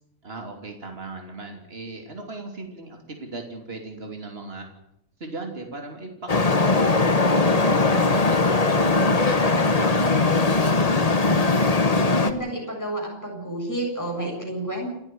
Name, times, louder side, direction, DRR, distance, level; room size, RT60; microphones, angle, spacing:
voice 1, 0.2-4.7 5.2-10.6, right 2 dB, 55° right, 3 dB, 3.4 m, -37 dB
Traffic noise roadway noise, 6.3-12.3, left 3 dB, 30° left, 1.4 m, -20 dB
voice 2, 12.1-15.0, right 1 dB, 15° left, 0 dB, 7.7 m, -30 dB
29.0 x 10.5 x 9.5 m, 0.76 s
omnidirectional pair, 1.3 m